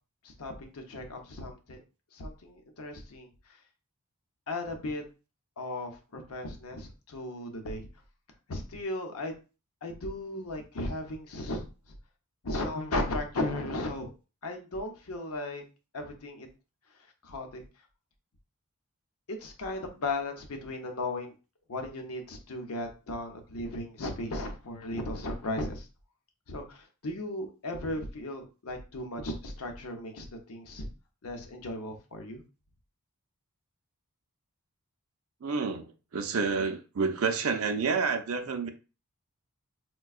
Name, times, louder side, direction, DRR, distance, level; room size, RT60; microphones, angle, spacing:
voice 1, 0.4-1.8 2.2-3.3 4.5-5.0 5.6-7.9 8.5-9.3 9.8-11.7 12.4-14.1 14.4-15.6 15.9-16.5 17.2-17.6 19.3-21.3 21.7-25.8 26.5-30.9 31.2-32.4, left 1 dB, 70° left, 0.7 m, -36 dB
voice 2, 35.4-35.9 36.1-38.7, right 5 dB, 65° right, 0.5 m, -29 dB
4.4 x 2.2 x 2.4 m
head